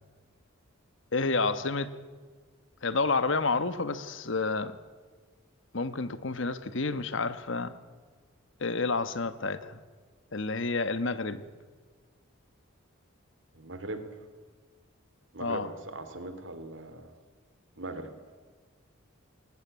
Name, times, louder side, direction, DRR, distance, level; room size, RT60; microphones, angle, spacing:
voice 1, 1.1-1.9 2.8-4.8 5.7-7.8 8.6-9.8 10.3-11.4 15.4-15.7, left 3 dB, 60° left, 13 dB, 1.2 m, -29 dB
voice 2, 13.5-14.1 15.3-17.1 17.8-18.1, right 2 dB, 60° right, 10 dB, 2.6 m, -39 dB
21.0 x 18.5 x 9.7 m, 1.5 s
head